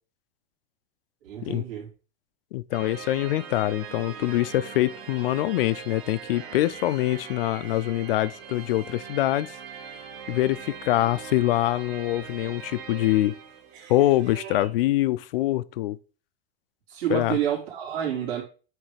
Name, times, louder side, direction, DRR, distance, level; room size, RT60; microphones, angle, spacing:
voice 1, 1.2-1.9 16.9-18.4, right 10 dB, 65° right, 3.5 m, -29 dB
voice 2, 2.5-9.5 10.3-13.4 13.9-16.0 17.1-17.4, left 15 dB, 65° left, 0.5 m, -24 dB
sound 1, 2.7-14.7, right 7 dB, 50° right, 1.4 m, -41 dB
9.0 x 3.4 x 4.9 m
supercardioid pair, 170°, 31 cm